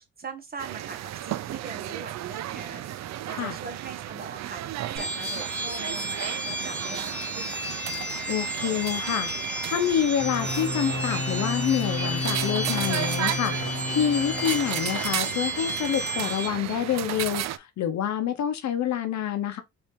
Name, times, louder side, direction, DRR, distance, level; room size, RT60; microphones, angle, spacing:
voice 1, 0.2-7.8, right 4 dB, 30° right, 1.4 m, -41 dB
sound 1, 0.6-17.6, right 13 dB, 65° right, 0.5 m, -34 dB
sound 2, 5.0-16.5, equal, 5° left, 1.7 m, -33 dB
voice 2, 8.3-19.6, left 9 dB, 65° left, 0.8 m, -27 dB
sound 3, 10.2-15.4, left 2 dB, 30° left, 0.9 m, -32 dB
4.3 x 2.8 x 3.3 m
cardioid pair, 90°, 30 cm